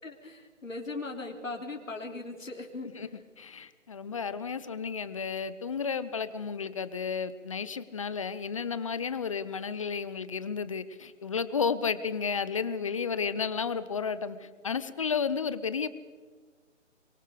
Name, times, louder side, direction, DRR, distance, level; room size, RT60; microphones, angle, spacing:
voice 1, 0.0-3.3, left 3 dB, 90° left, 2 dB, 3.5 m, -39 dB
voice 2, 3.4-15.9, left 6 dB, 25° left, 14 dB, 0.7 m, -32 dB
24.0 x 23.0 x 5.0 m, 1.5 s
figure-of-eight pair, 150°, 38 cm